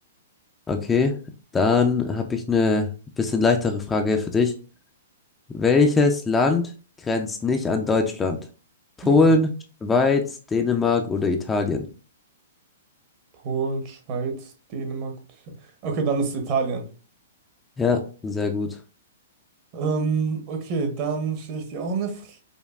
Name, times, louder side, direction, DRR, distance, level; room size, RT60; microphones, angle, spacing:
voice 1, 0.7-1.1 1.5-2.9 3.2-4.5 5.5-6.7 7.1-8.4 9.0-9.5 9.8-11.8 17.8-18.7, left 4 dB, 15° left, 0.4 m, -21 dB
voice 2, 9.0-9.4 13.4-15.2 15.8-16.9 19.7-22.4, right 4 dB, 40° right, 0.9 m, -27 dB
5.2 x 2.2 x 2.4 m
hypercardioid pair, 135°, 0 cm